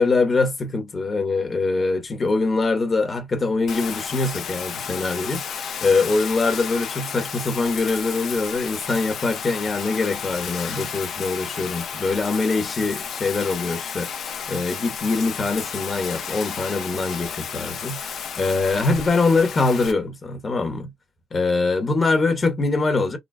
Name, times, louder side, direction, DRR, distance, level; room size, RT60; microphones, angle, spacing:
voice 1, 0.0-20.9 21.3-23.2, left 3 dB, 35° left, 1.1 m, -23 dB
Bathtub (filling or washing), 3.7-19.9, left 7 dB, 65° left, 0.7 m, -32 dB
3.9 x 2.1 x 2.2 m
supercardioid pair, 75°, 0 cm